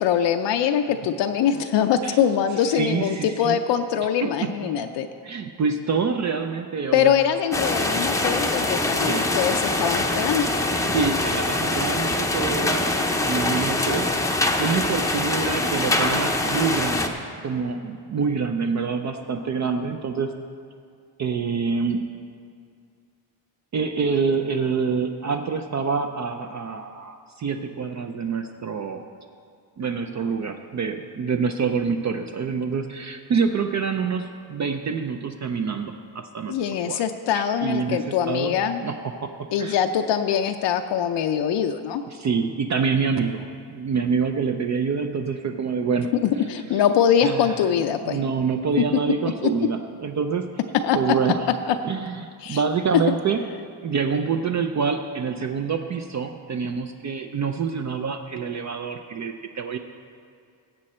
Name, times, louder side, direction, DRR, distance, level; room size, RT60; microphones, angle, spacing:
voice 1, 0.0-5.1 6.9-10.5 36.5-38.8 39.5-42.0 46.2-48.2 49.4-49.5 50.8-51.3 51.7-51.8 52.4-52.6 53.1-53.2, left 8 dB, 65° left, 6 dB, 0.6 m, -23 dB
voice 2, 2.7-3.6 4.2-4.9 5.2-7.1 9.0-9.3 10.9-20.3 21.2-22.1 23.7-29.0 29.8-36.5 36.9-37.0 37.3-38.5 38.8-39.0 39.2-39.3 39.6-39.8 42.1-46.1 46.7-46.8 47.2-47.5 48.0-50.5 50.9-51.5 51.8-53.4 53.8-59.8, right 5 dB, 40° right, 6 dB, 0.5 m, -26 dB
sound 1, 7.5-17.1, left 2 dB, 5° left, 0.6 m, -24 dB
17.0 x 7.6 x 4.3 m, 2.3 s
cardioid pair, 130°, 45 cm